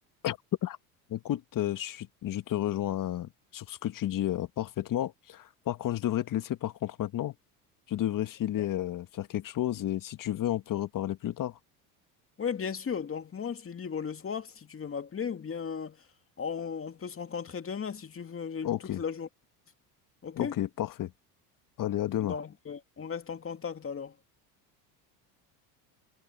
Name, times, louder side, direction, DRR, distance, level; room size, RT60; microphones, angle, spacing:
voice 1, 0.2-0.8 1.1-7.3 7.9-11.6 18.6-19.0 20.3-21.1 21.8-22.3, left 12 dB, 45° left, 1.6 m, -32 dB
voice 2, 12.4-16.0 16.4-19.3 20.2-20.5 22.2-24.1, left 6 dB, 30° left, 2.5 m, -36 dB
supercardioid pair, 95°, 46 cm